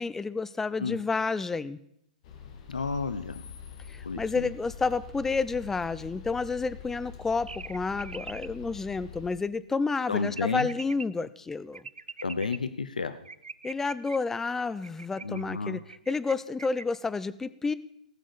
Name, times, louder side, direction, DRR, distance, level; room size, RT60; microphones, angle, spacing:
voice 1, 0.0-1.8 3.9-11.8 13.6-17.7, left 4 dB, 10° left, 16 dB, 0.6 m, -30 dB
sound 1, 2.2-9.3, left 8 dB, 45° left, 2.5 m, -45 dB
voice 2, 2.7-3.4 4.0-4.5 10.1-10.7 12.2-13.2 15.2-15.8, left 4 dB, 75° left, 11 dB, 0.8 m, -31 dB
sound 2, 7.5-8.5 10.3-11.1 11.7-12.6 13.3-14.2 14.8-15.4 15.9-16.3 16.6-17.0, right 4 dB, 80° right, 0.6 m, -42 dB
18.0 x 6.4 x 6.8 m, 0.74 s
figure-of-eight pair, 115°, 4 cm